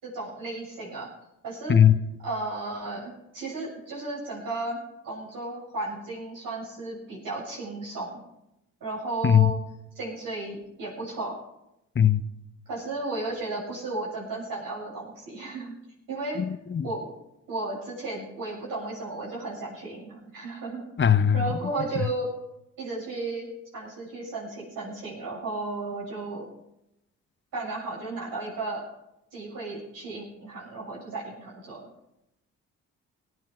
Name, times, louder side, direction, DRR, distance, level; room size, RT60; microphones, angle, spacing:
voice 1, 0.0-1.1 1.4-1.8 2.2-4.8 5.0-8.2 8.8-9.6 10.0-11.4 12.7-15.7 16.1-16.4 16.8-17.1 17.5-20.8 21.3-22.3 22.8-23.5 23.7-26.5 27.5-28.8 29.3-31.9, right 2 dB, 65° right, 7.5 m, -34 dB
voice 2, 16.4-16.9 21.0-21.5 22.0-22.1, left 9 dB, 30° left, 0.9 m, -20 dB
18.0 x 9.7 x 5.7 m
hypercardioid pair, 50°, 36 cm